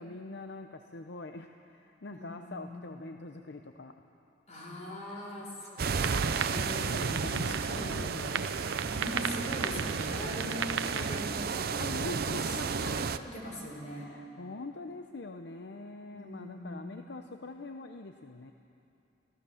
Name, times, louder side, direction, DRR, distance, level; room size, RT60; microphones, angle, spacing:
voice 1, 0.0-3.9 6.5-8.5 11.8-12.9 13.9-18.5, left 3 dB, 65° left, 6 dB, 0.7 m, -43 dB
voice 2, 2.1-2.8 4.5-6.7 7.4-8.1 8.9-11.7 12.4-13.1 13.3-14.1 16.1-17.0, left 1 dB, 40° left, -1 dB, 4.5 m, -41 dB
sound 1, 5.8-13.2, right 5 dB, 55° right, 0.6 m, -33 dB
sound 2, 6.0-11.2, right 6 dB, 90° right, 0.8 m, -36 dB
25.0 x 16.5 x 7.1 m, 2.8 s
head